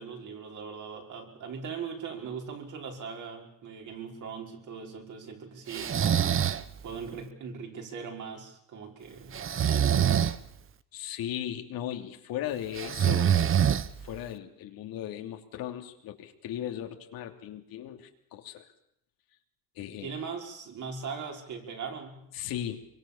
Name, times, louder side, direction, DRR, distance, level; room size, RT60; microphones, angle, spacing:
voice 1, 0.0-6.0 6.8-10.3 20.0-22.3, right 6 dB, 50° right, 1 dB, 5.7 m, -40 dB
Breathing, 5.7-6.6 9.3-10.4 12.8-14.2, right 9 dB, 35° right, 1.1 m, -25 dB
voice 2, 10.9-13.4 14.0-18.7 19.8-20.1 22.3-22.8, left 11 dB, 65° left, 4 dB, 3.0 m, -37 dB
24.0 x 24.0 x 7.2 m, 0.74 s
cardioid pair, 105°, 37 cm